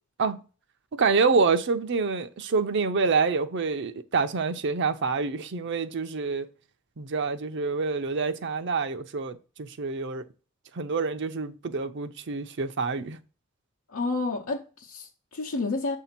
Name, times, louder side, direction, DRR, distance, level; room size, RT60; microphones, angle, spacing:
voice 1, 0.9-6.5 7.0-10.2 10.7-13.2, right 4 dB, 55° right, 0.5 m, -27 dB
voice 2, 13.9-16.0, left 3 dB, 85° left, 0.9 m, -30 dB
7.4 x 2.7 x 5.9 m
head